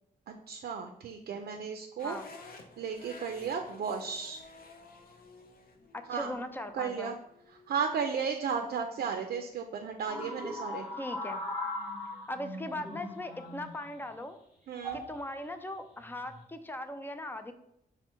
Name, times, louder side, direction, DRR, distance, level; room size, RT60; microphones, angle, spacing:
voice 1, 0.3-2.2 2.8-4.4 6.1-6.3 6.7-7.2 7.7-10.9 14.7-15.0, right 6 dB, 80° right, 4 dB, 0.4 m, -34 dB
sound 1, 2.0-8.1, left 3 dB, 70° left, 0.6 m, -53 dB
voice 2, 5.9-7.1 11.0-11.4 12.3-14.4 14.9-17.5, left 1 dB, 15° left, 8 dB, 0.3 m, -39 dB
sound 2, 10.1-13.9 14.8-15.1 16.1-16.4, left 1 dB, 5° right, 0.9 m, -39 dB
5.3 x 2.1 x 4.4 m, 0.76 s
wide cardioid pair, 135°, 16 cm